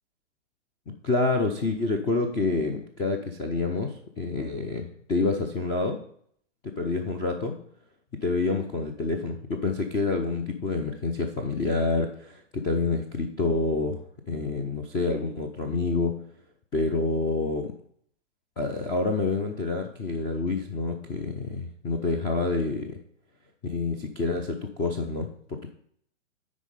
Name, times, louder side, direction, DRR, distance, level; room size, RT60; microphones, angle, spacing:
voice 1, 0.9-6.0 6.8-7.6 8.2-14.0 14.3-16.2 16.7-17.7 18.6-23.0 23.6-25.7, left 3 dB, 15° left, 4 dB, 0.4 m, -28 dB
9.7 x 4.2 x 5.3 m, 0.63 s
figure-of-eight pair, 115°, 37 cm